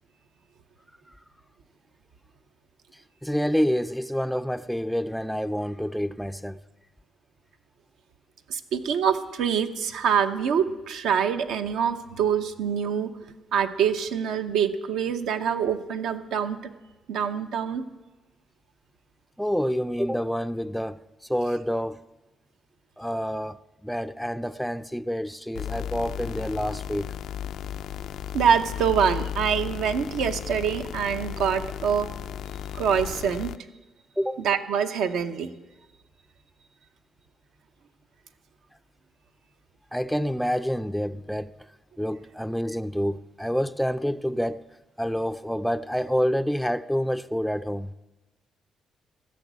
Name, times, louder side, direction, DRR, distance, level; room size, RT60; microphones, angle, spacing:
voice 1, 3.2-6.6 19.4-21.0 21.3-22.0 23.0-27.1 34.2-34.4 39.9-41.5 42.0-44.7 45.0-47.9, equal, ahead, 0.3 m, -28 dB
voice 2, 8.5-13.1 13.5-16.6 17.1-17.8 28.3-32.1 32.7-33.5 34.4-35.5, right 7 dB, 85° right, 0.8 m, -25 dB
sound 1, 25.5-33.6, left 10 dB, 80° left, 0.3 m, -35 dB
14.5 x 6.4 x 8.1 m
cardioid pair, 90°, 0 cm